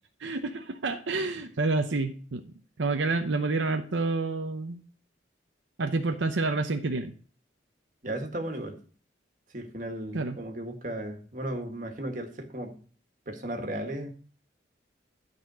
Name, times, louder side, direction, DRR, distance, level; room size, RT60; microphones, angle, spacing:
voice 1, 0.2-2.4 2.8-4.8 5.8-7.1 10.1-10.4, right 3 dB, 80° right, 6 dB, 0.8 m, -28 dB
voice 2, 8.0-8.8 9.5-12.7 13.3-14.1, right 1 dB, 45° right, 4 dB, 1.7 m, -35 dB
12.0 x 4.2 x 6.1 m, 0.42 s
head